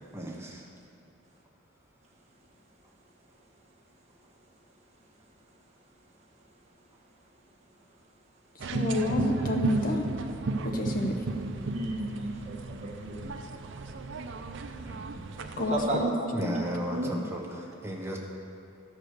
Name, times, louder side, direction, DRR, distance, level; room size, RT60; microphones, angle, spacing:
voice 1, 0.1-0.7 14.8-15.3 16.3-18.2, right 1 dB, 10° right, -1 dB, 1.1 m, -35 dB
sound 1, 8.6-16.0, right 3 dB, 60° right, 0.5 m, -34 dB
voice 2, 8.7-10.1 10.6-11.2 15.6-16.1 16.4-16.6, equal, 45° left, 2 dB, 0.8 m, -28 dB
voice 3, 11.7-13.3 15.7-16.0 16.9-17.2, right 1 dB, 35° right, -2 dB, 1.2 m, -33 dB
12.5 x 4.9 x 6.6 m, 2.6 s
head